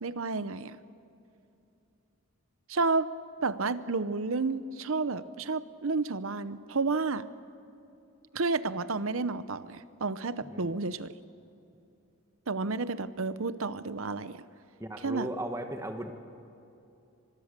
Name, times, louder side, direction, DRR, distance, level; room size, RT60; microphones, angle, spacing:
voice 1, 0.0-0.8 2.7-3.1 3.4-7.3 8.3-11.1 12.5-14.4 15.0-15.3, right 3 dB, 70° right, 14 dB, 0.8 m, -31 dB
voice 2, 10.4-10.8 14.8-16.1, right 1 dB, 15° right, 5 dB, 1.5 m, -37 dB
25.0 x 21.5 x 6.8 m, 2.7 s
head